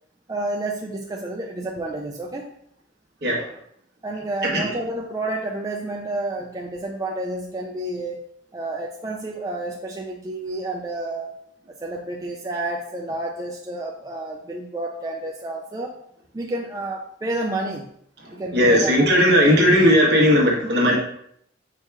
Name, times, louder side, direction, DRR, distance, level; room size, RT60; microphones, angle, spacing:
voice 1, 0.3-2.5 4.0-8.2 8.5-11.3 11.8-15.9 16.3-17.9 18.3-19.2, right 2 dB, 20° right, 0 dB, 0.3 m, -30 dB
voice 2, 18.5-21.0, equal, 60° right, -2 dB, 1.1 m, -17 dB
4.5 x 2.3 x 4.6 m, 0.71 s
head